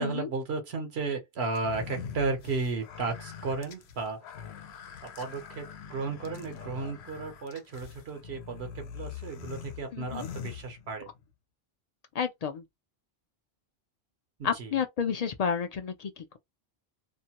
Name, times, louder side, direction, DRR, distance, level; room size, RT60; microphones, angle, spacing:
voice 1, 0.0-4.2 5.0-11.1 14.4-14.8, right 4 dB, 80° right, 1.0 m, -34 dB
sound 1, 1.5-11.2, left 7 dB, 90° left, 0.8 m, -43 dB
voice 2, 9.9-10.3 12.1-12.6 14.4-16.4, left 7 dB, 55° left, 0.5 m, -31 dB
2.5 x 2.2 x 2.8 m
omnidirectional pair, 1.1 m